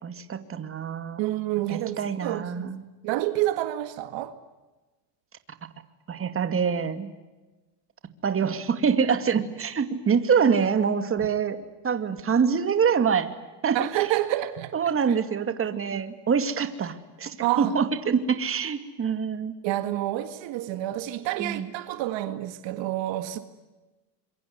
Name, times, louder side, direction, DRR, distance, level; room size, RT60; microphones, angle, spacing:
voice 1, 0.0-1.2 1.7-2.8 6.1-7.1 8.2-13.3 13.6-13.9 14.7-19.5 21.4-21.7, right 6 dB, 25° right, 2.5 m, -25 dB
voice 2, 1.2-2.7 3.0-4.4 13.7-15.2 15.9-16.0 17.4-17.8 19.6-23.4, right 15 dB, 60° right, 2.0 m, -28 dB
26.5 x 23.5 x 9.6 m
supercardioid pair, 110°, 50 cm